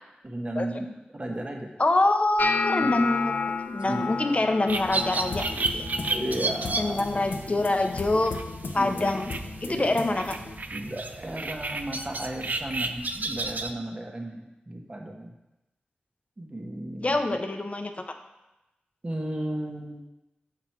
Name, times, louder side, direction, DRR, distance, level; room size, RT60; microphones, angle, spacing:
voice 1, 0.2-1.7 2.8-3.0 3.8-4.0 6.1-7.0 7.5-7.6 8.7-9.0 9.7-9.9 10.7-15.3 16.4-17.1 19.0-20.0, right 1 dB, 35° right, 1 dB, 1.2 m, -34 dB
voice 2, 1.8-3.3 3.7-5.9 6.8-8.3 8.7-9.3 9.6-10.4 17.0-18.1, left 2 dB, 40° left, 6 dB, 0.8 m, -25 dB
sound 1, 2.4-8.5 8.8-9.3 9.6-10.2 10.8-11.0 12.8-12.9, left 4 dB, 60° left, 0.3 m, -33 dB
sound 2, 4.7-13.7, right 3 dB, 55° right, 0.5 m, -33 dB
sound 3, 5.3-10.6, left 3 dB, 80° left, 0.7 m, -38 dB
5.9 x 5.8 x 4.5 m, 0.98 s
cardioid pair, 50°, 3 cm